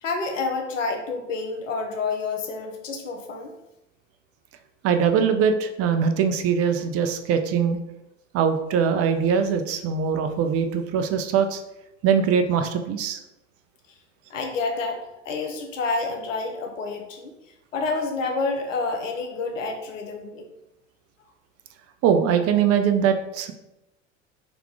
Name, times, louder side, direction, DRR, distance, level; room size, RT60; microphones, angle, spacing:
voice 1, 0.0-3.5 14.3-17.3 17.7-20.5, left 3 dB, 85° left, 3 dB, 0.8 m, -29 dB
voice 2, 4.8-7.8 8.3-11.6 12.0-13.2 22.0-23.5, right 7 dB, 40° right, 8 dB, 0.5 m, -22 dB
4.0 x 2.9 x 3.4 m, 0.90 s
hypercardioid pair, 75°, 37 cm